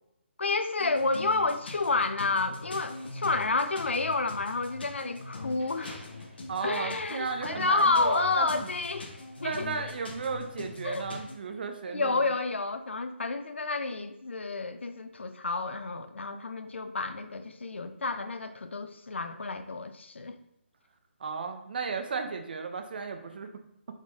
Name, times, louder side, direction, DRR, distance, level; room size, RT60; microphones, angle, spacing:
voice 1, 0.4-6.1 6.6-9.7 10.8-11.0 11.9-20.4, left 3 dB, 75° left, 10 dB, 0.5 m, -30 dB
sound 1, 0.8-11.3, left 3 dB, 55° left, 1.0 m, -43 dB
sound 2, 2.9-7.1 7.4-8.7, equal, 15° right, 1.3 m, -54 dB
voice 2, 6.5-8.7 9.4-12.4 21.2-23.5, right 5 dB, 50° right, 6 dB, 0.6 m, -34 dB
4.9 x 3.7 x 2.6 m, 0.79 s
figure-of-eight pair, 145°, 7 cm